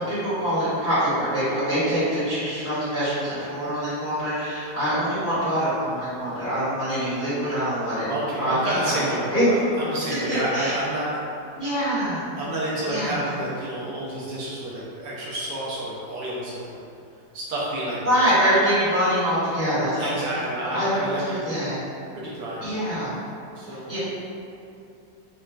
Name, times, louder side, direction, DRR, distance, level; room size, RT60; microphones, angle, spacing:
voice 1, 0.1-8.1 8.4-9.0 9.3-9.4 10.5-10.7 11.6-12.2 12.8-13.3 18.0-20.1 20.6-21.7 22.6-23.1 23.9-24.0, equal, 10° left, -16 dB, 1.2 m, -24 dB
voice 2, 8.1-9.3 9.8-11.1 12.4-16.7 17.3-18.0 19.9-21.6 22.1-22.6 23.6-23.9, right 1 dB, 75° right, -7 dB, 1.3 m, -29 dB
4.1 x 2.4 x 2.2 m, 2.6 s
omnidirectional pair, 1.9 m